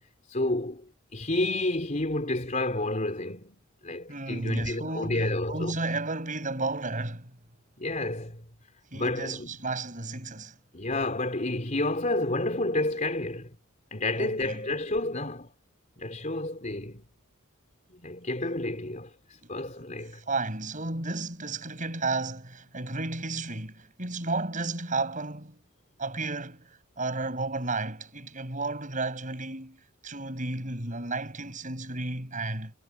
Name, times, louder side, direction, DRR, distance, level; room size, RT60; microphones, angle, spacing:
voice 1, 0.3-5.8 7.8-8.4 8.9-9.6 10.7-13.6 13.9-15.5 16.0-17.0 17.9-20.2, left 2 dB, 35° left, 3.8 m, -30 dB
voice 2, 4.1-7.3 8.9-10.6 14.2-14.6 19.4-19.5 20.1-25.6 26.0-32.7, right 3 dB, 40° right, 6.3 m, -33 dB
head